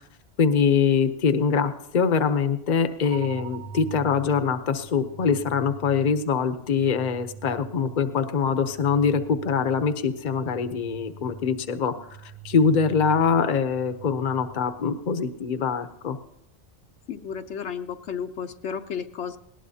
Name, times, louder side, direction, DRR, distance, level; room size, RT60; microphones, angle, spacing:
voice 1, 0.4-11.9 12.4-16.2, left 6 dB, 45° left, 10 dB, 0.9 m, -23 dB
sound 1, 3.0-15.0, right 5 dB, 85° right, 1.6 m, -44 dB
voice 2, 17.1-19.4, left 7 dB, 75° left, 7 dB, 1.0 m, -33 dB
19.0 x 18.0 x 2.8 m, 0.79 s
omnidirectional pair, 1.2 m